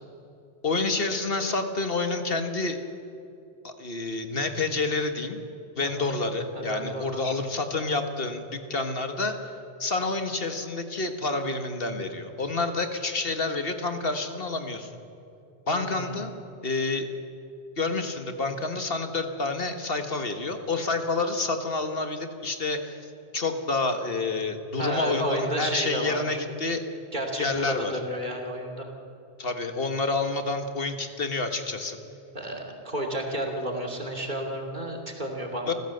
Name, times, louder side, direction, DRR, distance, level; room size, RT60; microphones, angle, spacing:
voice 1, 0.6-2.8 3.6-5.4 5.8-9.4 9.8-14.9 15.7-16.3 16.6-17.1 17.8-23.1 23.3-26.8 27.4-27.9 29.4-32.0 35.7-35.8, left 3 dB, 60° left, 6 dB, 1.7 m, -28 dB
voice 2, 5.8-6.1 6.5-7.3 15.7-16.1 24.8-26.4 27.1-28.9 32.3-35.7, right 1 dB, 45° right, 1 dB, 3.0 m, -32 dB
28.0 x 15.5 x 7.8 m, 2.6 s
omnidirectional pair, 1.1 m